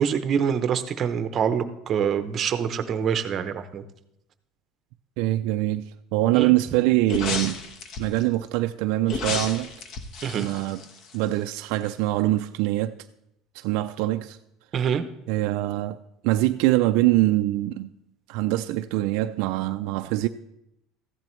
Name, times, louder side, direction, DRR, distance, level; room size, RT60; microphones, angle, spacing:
voice 1, 0.0-3.8 6.3-6.5 10.2-10.5 14.7-15.0, right 7 dB, 35° right, 0.7 m, -25 dB
voice 2, 5.2-7.6 8.0-9.7 10.3-10.8 11.1-12.9 13.5-14.4 15.3-16.0 16.2-17.9 18.3-20.3, right 16 dB, 70° right, 0.3 m, -24 dB
sound 1, 7.1-8.2 9.1-11.5 11.8-11.9, left 4 dB, 45° left, 1.0 m, -32 dB
14.5 x 10.5 x 3.1 m
cardioid pair, 150°, 0 cm